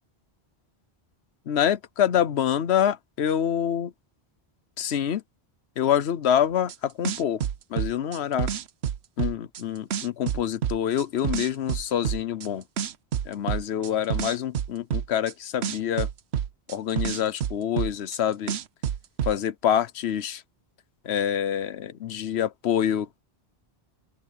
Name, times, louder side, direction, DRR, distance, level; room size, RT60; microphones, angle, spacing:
voice 1, 1.5-3.9 4.8-5.2 5.8-7.4 7.7-8.5 9.2-12.6 13.2-16.1 16.7-18.6 19.2-20.4 21.0-23.2, left 9 dB, 85° left, 1.0 m, -26 dB
sound 1, 6.7-6.8 7.0-9.6 9.9-12.5 12.8-15.3 15.6-18.2 18.5-19.4, right 9 dB, 85° right, 1.0 m, -28 dB
open air
omnidirectional pair, 1.1 m